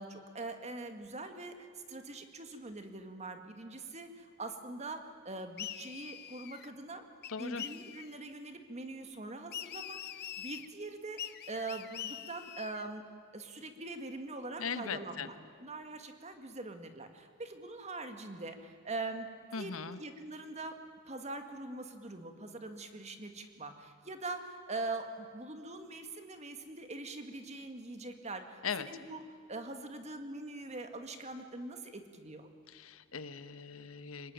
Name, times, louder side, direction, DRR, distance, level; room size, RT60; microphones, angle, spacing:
voice 1, 0.0-7.0 7.4-13.1 13.3-15.4 15.6-19.3 19.6-20.7 21.1-29.2 29.5-32.5, right 2 dB, 35° right, 7 dB, 1.9 m, -43 dB
sound 1, 5.6-6.7 7.2-8.2 9.5-10.7 11.2-12.9, left 10 dB, 50° left, 0.8 m, -44 dB
voice 2, 7.3-7.6 14.6-15.3 19.5-20.0 28.6-28.9 32.7-34.3, left 5 dB, 85° left, 12 dB, 1.1 m, -39 dB
24.5 x 20.0 x 9.1 m, 2.1 s
head